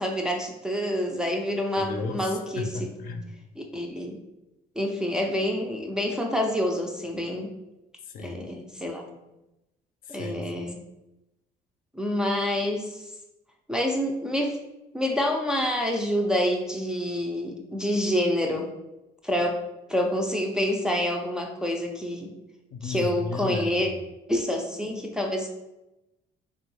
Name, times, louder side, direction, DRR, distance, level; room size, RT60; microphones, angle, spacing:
voice 1, 0.0-2.9 3.6-4.2 4.8-7.5 8.2-9.0 10.1-10.8 11.9-13.0 13.7-14.6 14.9-18.7 19.2-19.6 19.9-22.3 22.8-23.9 24.3-25.5, left 1 dB, 5° right, 1 dB, 0.3 m, -27 dB
voice 2, 1.8-3.3 8.1-8.4 10.1-10.6 22.7-24.0, left 3 dB, 55° left, 5 dB, 0.4 m, -34 dB
3.4 x 2.2 x 3.0 m, 0.95 s
cardioid pair, 110°, 17 cm